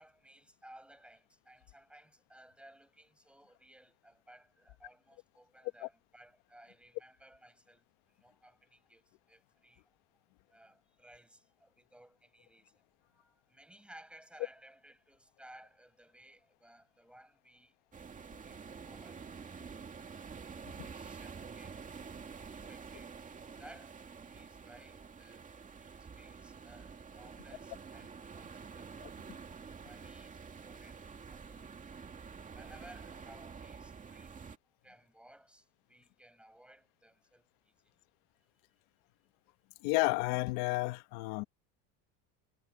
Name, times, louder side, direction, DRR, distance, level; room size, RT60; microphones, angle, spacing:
voice 1, 0.0-9.9 10.5-17.8 18.2-19.7 20.8-23.2 23.6-24.0 24.3-29.0 29.8-31.8 32.5-34.5 34.8-38.0, right 1 dB, 5° right, 7.6 m, -59 dB
sound 1, 17.9-34.6, right 5 dB, 20° right, 2.3 m, -48 dB
voice 2, 39.8-41.4, left 23 dB, 70° left, 1.2 m, -31 dB
cardioid pair, 130°, 36 cm